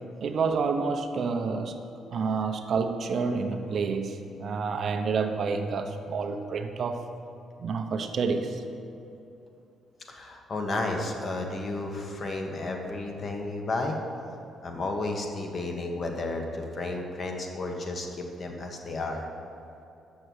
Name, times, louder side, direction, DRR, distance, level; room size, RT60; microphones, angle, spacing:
voice 1, 0.2-1.8 2.1-7.0 7.6-8.6, right 5 dB, 55° right, 6 dB, 0.7 m, -29 dB
voice 2, 10.1-14.0 14.6-19.3, left 2 dB, 45° left, 2 dB, 1.3 m, -32 dB
7.0 x 6.5 x 7.9 m, 2.7 s
cardioid pair, 90°, 0 cm